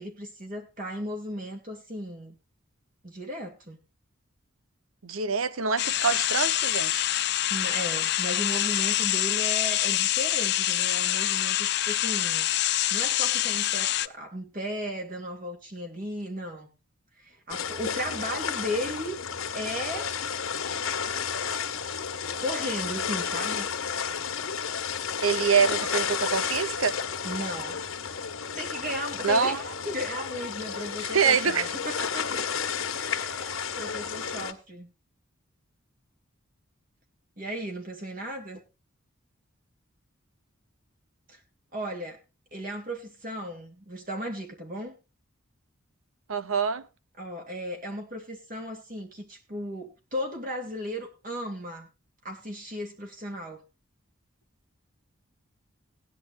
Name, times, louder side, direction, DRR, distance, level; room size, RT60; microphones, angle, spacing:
voice 1, 0.0-2.4 3.0-3.8 7.5-12.5 12.9-16.7 17.2-19.2 19.5-20.1 22.4-23.7 27.2-27.8 28.6-32.6 32.9-33.5 33.8-34.9 37.4-38.6 41.3-41.4 41.7-42.2 42.5-44.9 47.2-51.9 52.2-53.6, equal, 40° right, 2.6 m, -35 dB
voice 2, 5.0-7.1 25.2-26.9 29.2-29.6 31.0-31.7 46.3-46.8, right 6 dB, 90° right, 0.9 m, -25 dB
sound 1, 5.8-14.1, left 14 dB, 50° left, 0.5 m, -26 dB
sound 2, 17.5-34.5, left 7 dB, 85° left, 1.7 m, -32 dB
18.0 x 10.5 x 2.5 m
head